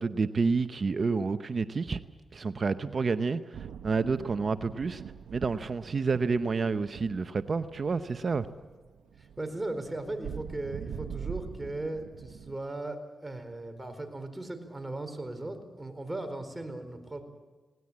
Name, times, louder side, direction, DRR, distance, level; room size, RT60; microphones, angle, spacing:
voice 1, 0.0-2.0 2.3-5.0 5.3-8.5, right 4 dB, 50° right, 12 dB, 0.8 m, -29 dB
sound 1, 3.5-12.6, right 8 dB, 85° right, 1.0 m, -44 dB
voice 2, 9.2-17.2, right 2 dB, 20° right, 8 dB, 4.2 m, -37 dB
20.0 x 18.5 x 8.7 m, 1.3 s
cardioid pair, 55°, 0 cm